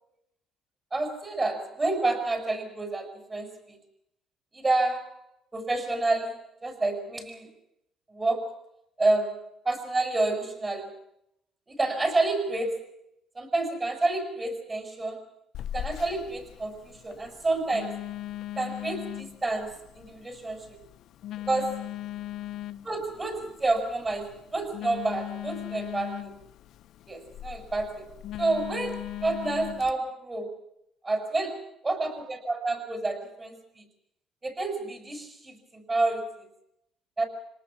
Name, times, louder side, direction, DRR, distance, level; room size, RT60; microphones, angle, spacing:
voice 1, 0.9-3.8 4.5-5.1 5.5-7.5 8.1-8.6 9.0-9.4 9.7-10.9 11.7-12.8 13.4-15.2 15.7-18.0 18.6-20.8 21.5-21.8 22.9-26.3 27.1-28.1 28.4-30.5 31.0-33.8 34.4-36.5 37.2-37.3, right 2 dB, 20° right, 6 dB, 7.2 m, -29 dB
Telephone, 15.5-29.9, left 13 dB, 65° left, 1.1 m, -39 dB
27.0 x 19.0 x 7.4 m, 0.78 s
cardioid pair, 115°, 0 cm